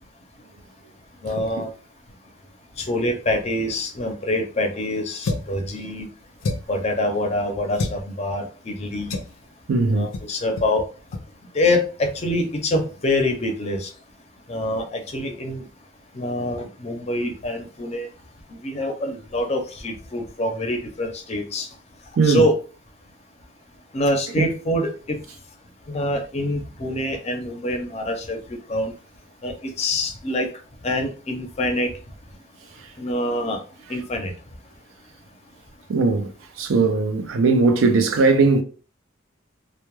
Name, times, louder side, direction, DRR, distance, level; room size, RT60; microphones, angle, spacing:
voice 1, 1.2-1.7 2.8-6.1 6.7-9.2 9.9-10.8 11.5-13.9 14.5-15.7 16.1-18.1 18.5-21.7 22.2-22.5 23.9-25.2 25.9-28.9 29.4-30.5 30.8-31.9 33.0-33.6 33.9-34.3, left 1 dB, 35° left, 0.5 m, -25 dB
sound 1, 5.2-5.6 6.4-6.8 7.7-8.0 9.1-9.4 10.1-10.3 10.6-10.7 11.1-11.3, left 2 dB, 85° left, 0.4 m, -28 dB
voice 2, 9.7-10.1 22.2-22.5 24.4-24.5 35.9-36.3 36.6-38.6, right 3 dB, 85° right, 0.4 m, -18 dB
2.2 x 2.1 x 3.0 m
head